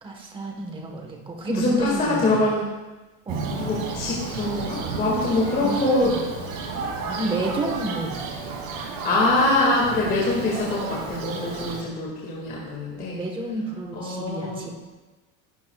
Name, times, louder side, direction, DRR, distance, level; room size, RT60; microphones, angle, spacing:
voice 1, 0.0-2.5 3.2-3.5 5.6-6.2 7.0-8.5 13.1-14.7, right 2 dB, 10° right, 1 dB, 1.3 m, -30 dB
voice 2, 1.5-2.7 3.5-6.1 9.0-13.2 13.9-14.6, left 2 dB, 20° left, -4 dB, 2.1 m, -24 dB
Thunder, 3.3-11.8, right 4 dB, 45° right, 2.6 m, -32 dB
20.0 x 12.0 x 2.4 m, 1.2 s
cardioid pair, 170°, 40 cm